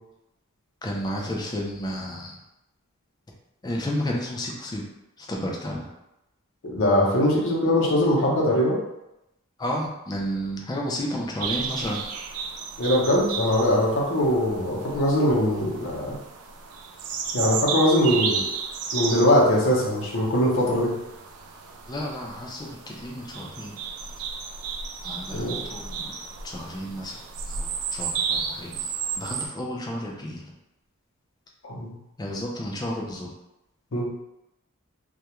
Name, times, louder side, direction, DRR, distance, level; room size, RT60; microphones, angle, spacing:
voice 1, 0.8-2.4 3.6-4.8 5.2-5.9 9.6-12.0 21.9-23.7 25.0-26.2 26.4-27.2 27.5-30.5 32.2-33.3, equal, 20° left, -1 dB, 0.4 m, -32 dB
voice 2, 6.6-8.8 12.8-16.1 17.3-18.5 18.9-20.9 25.3-25.6 31.6-31.9 33.9-34.1, left 1 dB, 60° left, -4 dB, 0.7 m, -21 dB
sound 1, 11.4-29.5, right 6 dB, 70° right, 0.4 m, -33 dB
2.3 x 2.1 x 2.9 m, 0.89 s
head